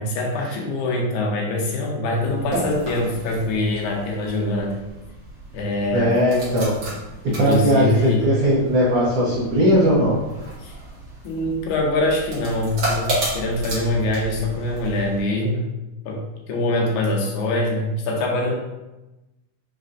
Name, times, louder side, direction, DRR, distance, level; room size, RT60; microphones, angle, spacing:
voice 1, 0.0-4.8 5.5-6.1 7.2-8.3 10.6-10.7 11.2-15.7 16.1-18.5, left 1 dB, 90° left, -1 dB, 2.2 m, -24 dB
sound 1, 2.1-15.2, right 1 dB, 50° right, 1.8 m, -33 dB
voice 2, 5.9-6.7 7.4-10.1, equal, 65° right, -8 dB, 1.7 m, -18 dB
5.5 x 3.2 x 2.5 m, 1.0 s
omnidirectional pair, 3.3 m